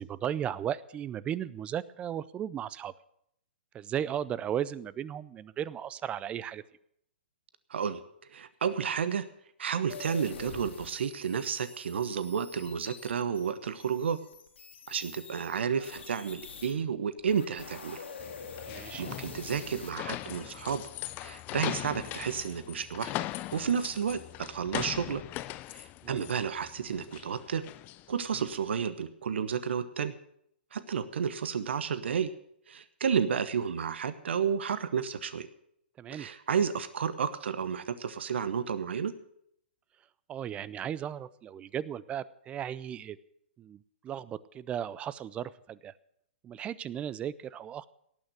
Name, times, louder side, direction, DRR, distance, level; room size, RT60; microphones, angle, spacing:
voice 1, 0.0-2.9 3.7-6.6 18.7-19.1 26.0-26.3 36.0-36.3 40.3-43.2 43.6-45.9 46.4-47.9, right 9 dB, 20° right, 19 dB, 0.4 m, -36 dB
voice 2, 7.7-8.0 8.3-9.3 9.6-14.2 14.9-18.0 18.7-20.8 21.2-23.1 23.5-25.2 25.7-27.6 28.1-30.1 30.7-32.3 32.7-35.5 36.1-39.1, right 7 dB, 75° right, 13 dB, 1.0 m, -31 dB
sound 1, 9.9-16.7 17.2-19.9, left 5 dB, 80° left, 3.1 m, -46 dB
sound 2, 18.2-28.6, left 16 dB, 30° left, 0.5 m, -40 dB
18.0 x 6.4 x 8.0 m, 0.72 s
hypercardioid pair, 130°, 6 cm